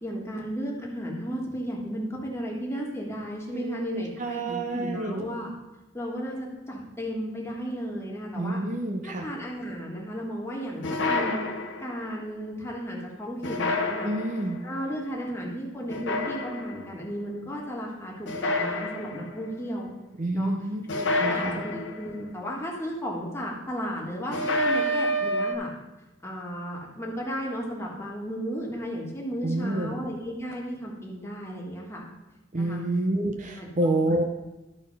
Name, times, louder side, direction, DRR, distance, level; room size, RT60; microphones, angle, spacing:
voice 1, 0.0-5.5 5.9-8.6 9.0-11.4 11.8-14.1 14.6-19.9 20.3-20.5 20.9-25.7 26.2-32.0 32.6-32.8 33.6-33.9, equal, 15° left, -3 dB, 1.7 m, -34 dB
voice 2, 3.5-5.3 8.4-9.3 14.0-14.6 20.2-20.8 21.2-21.6 29.4-30.0 32.5-34.2, right 2 dB, 45° right, 4 dB, 0.7 m, -28 dB
sound 1, 10.8-12.0 13.4-14.6 15.9-16.9 18.3-19.4 20.9-22.2 24.3-25.5, left 1 dB, 80° left, 0.9 m, -28 dB
12.5 x 4.3 x 5.4 m, 1.0 s
head